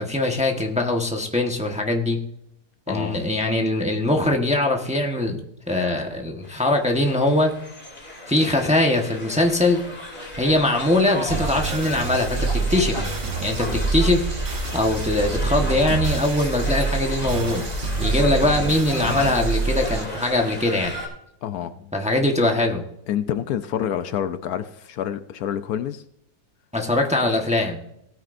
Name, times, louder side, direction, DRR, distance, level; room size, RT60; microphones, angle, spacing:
voice 1, 0.0-2.2 2.9-5.4 5.7-7.5 8.3-9.8 10.4-14.3 14.7-17.7 18.0-21.0 21.9-22.8 26.7-27.8, left 2 dB, 5° right, 2 dB, 1.0 m, -22 dB
voice 2, 2.9-3.2 21.4-21.9 23.1-26.0, left 9 dB, 75° left, 11 dB, 1.1 m, -28 dB
sound 1, 6.4-21.1, left 2 dB, 30° left, 3.3 m, -34 dB
sound 2, 11.3-20.0, right 4 dB, 40° right, 1.1 m, -26 dB
17.5 x 9.1 x 2.6 m, 0.77 s
omnidirectional pair, 1.7 m